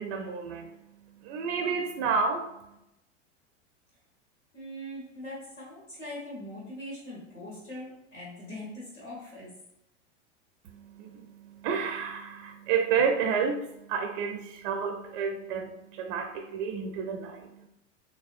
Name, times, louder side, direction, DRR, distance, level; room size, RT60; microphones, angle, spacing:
voice 1, 0.0-2.8 10.6-17.7, right 6 dB, 45° right, 4 dB, 0.4 m, -31 dB
voice 2, 4.5-9.5, left 1 dB, 90° left, -5 dB, 1.0 m, -41 dB
3.2 x 2.2 x 2.4 m, 0.86 s
figure-of-eight pair, 90°, 37 cm